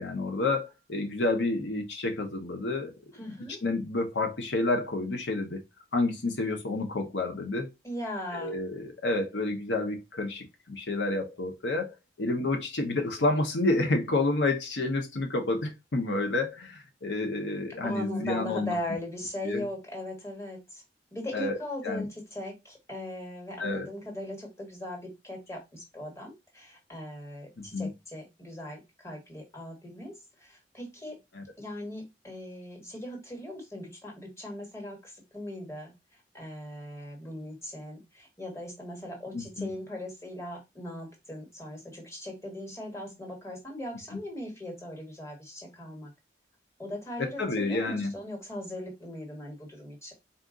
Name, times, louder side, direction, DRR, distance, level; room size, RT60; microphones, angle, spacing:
voice 1, 0.0-3.0 3.2-3.4 3.6-5.6 5.9-7.7 8.3-18.7 19.4-19.7 21.3-22.1 23.6-23.9 27.6-27.9 31.3-31.4 39.3-39.7 47.4-48.1, left 2 dB, 85° left, 0.9 m, -29 dB
voice 2, 3.2-3.6 7.8-8.5 17.8-20.8 21.1-30.1 30.4-31.1 31.6-35.9 36.3-46.1 46.8-50.1, left 1 dB, 15° left, 1.4 m, -39 dB
4.2 x 2.5 x 3.7 m
head